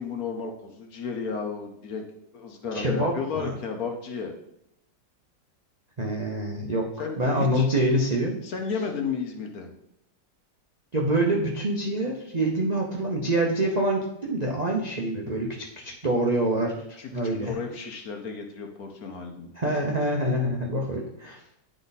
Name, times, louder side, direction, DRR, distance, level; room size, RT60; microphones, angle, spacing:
voice 1, 0.0-2.0 2.3-4.3 7.0-7.7 8.4-9.7 17.0-19.5, left 5 dB, 60° left, 4 dB, 1.2 m, -33 dB
voice 2, 2.7-3.5 6.0-6.9 7.2-8.4 10.9-16.7 17.1-17.5 19.6-21.4, right 1 dB, 50° right, -1 dB, 0.5 m, -26 dB
10.0 x 3.8 x 4.0 m, 0.79 s
omnidirectional pair, 2.0 m